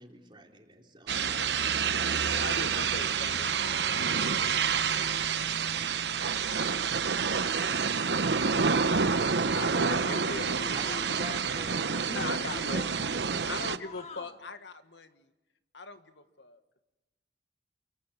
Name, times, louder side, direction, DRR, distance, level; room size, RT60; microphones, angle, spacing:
voice 1, 0.0-1.5 10.7-12.7, right 1 dB, 30° right, 2 dB, 3.8 m, -46 dB
sound 1, 1.1-13.8, right 6 dB, 70° right, 0.9 m, -28 dB
voice 2, 1.2-1.7 2.1-3.5 9.6-11.4 12.2-13.0 13.5-15.3 15.7-16.6, left 3 dB, 85° left, 9 dB, 1.7 m, -40 dB
voice 3, 12.1-13.3 13.6-14.4, left 2 dB, 40° left, 5 dB, 2.4 m, -45 dB
28.5 x 24.0 x 8.8 m, 1.1 s
head